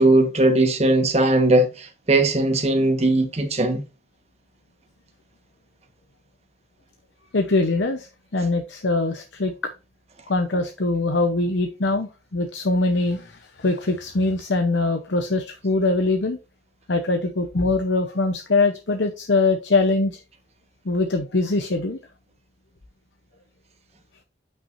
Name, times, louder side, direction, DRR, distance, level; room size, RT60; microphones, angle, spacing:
voice 1, 0.0-3.8, right 2 dB, 35° right, 1.4 m, -19 dB
voice 2, 7.3-8.1 8.3-9.5 10.3-16.4 16.9-20.2 20.9-22.0, left 3 dB, 75° left, 0.9 m, -22 dB
8.7 x 5.9 x 2.6 m
head